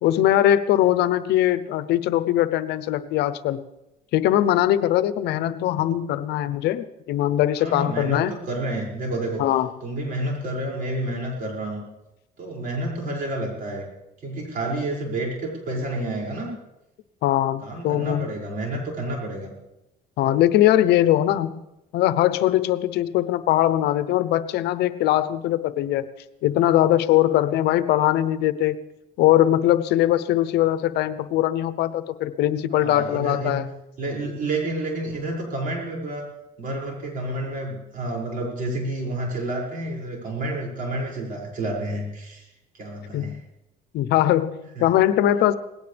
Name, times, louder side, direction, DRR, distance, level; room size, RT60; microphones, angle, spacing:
voice 1, 0.0-3.6 4.1-8.3 9.4-9.7 17.2-18.3 20.2-21.6 21.9-26.1 26.4-28.8 29.2-33.7 43.1-43.4 43.9-45.6, left 13 dB, 80° left, 14 dB, 0.8 m, -21 dB
voice 2, 7.6-9.4 9.8-11.8 12.4-13.9 14.2-16.5 17.6-19.5 32.7-33.6 34.0-36.3 36.6-42.5 42.7-43.4 44.7-44.8, right 1 dB, 55° right, -1 dB, 6.1 m, -29 dB
19.0 x 17.0 x 3.4 m, 0.93 s
cardioid pair, 110°, 17 cm